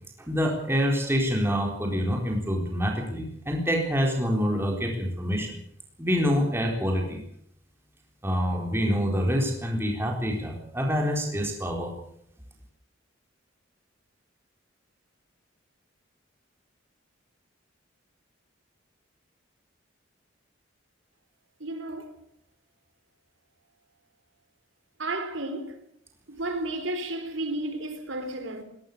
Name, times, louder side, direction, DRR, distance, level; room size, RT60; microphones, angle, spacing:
voice 1, 0.3-5.6 6.0-7.2 8.2-11.9, equal, 10° right, 4.1 m, -26 dB
voice 2, 21.6-22.1 25.0-25.8 26.3-28.6, right 2 dB, 75° right, 4.1 m, -32 dB
21.0 x 19.0 x 6.8 m
head